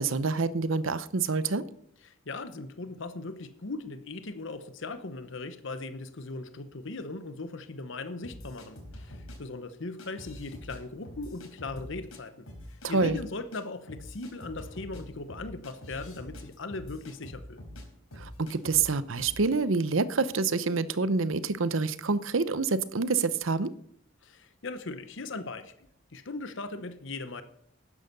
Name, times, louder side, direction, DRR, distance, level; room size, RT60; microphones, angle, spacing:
voice 1, 0.0-1.6 12.8-13.2 18.2-23.7, right 4 dB, 70° right, 15 dB, 0.8 m, -27 dB
voice 2, 2.1-12.5 12.9-17.6 24.2-25.7 26.1-27.4, left 3 dB, 60° left, 10 dB, 0.9 m, -39 dB
sound 1, 8.2-9.4 10.0-10.8 11.0-12.2 12.5-13.2 13.5-13.6 13.9-17.8 18.1-18.9 19.2-19.4, left 1 dB, 85° left, 4.2 m, -45 dB
12.0 x 9.7 x 6.7 m, 0.70 s
head